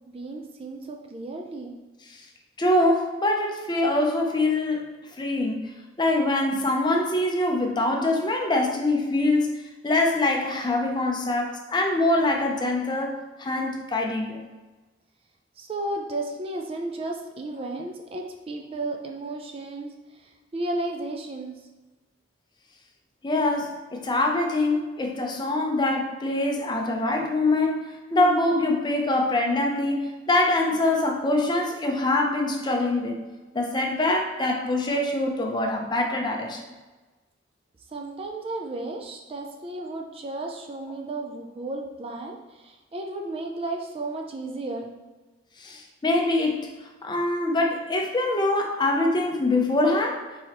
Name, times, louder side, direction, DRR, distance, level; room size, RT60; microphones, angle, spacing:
voice 1, 0.1-1.7 15.6-21.6 37.9-45.0, right 2 dB, 30° right, 2 dB, 0.4 m, -34 dB
voice 2, 2.6-5.6 6.0-14.4 23.2-33.2 33.5-36.6 45.6-50.3, left 2 dB, 25° left, 1 dB, 0.5 m, -24 dB
4.7 x 3.9 x 2.9 m, 1.2 s
head